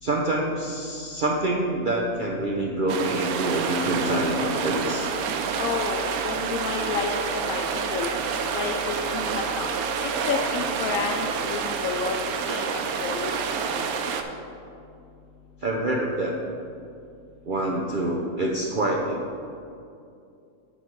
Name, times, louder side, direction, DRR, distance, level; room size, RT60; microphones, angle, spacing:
voice 1, 0.0-5.1 15.6-16.4 17.4-19.2, right 1 dB, 50° right, -1 dB, 0.6 m, -26 dB
sound 1, 2.9-14.2, right 6 dB, 85° right, 1.1 m, -28 dB
voice 2, 5.6-8.1 8.5-9.7 10.0-12.2 12.5-13.6 14.0-14.1, left 5 dB, 80° left, 1 dB, 1.0 m, -30 dB
11.5 x 4.2 x 4.6 m, 2.5 s
omnidirectional pair, 1.5 m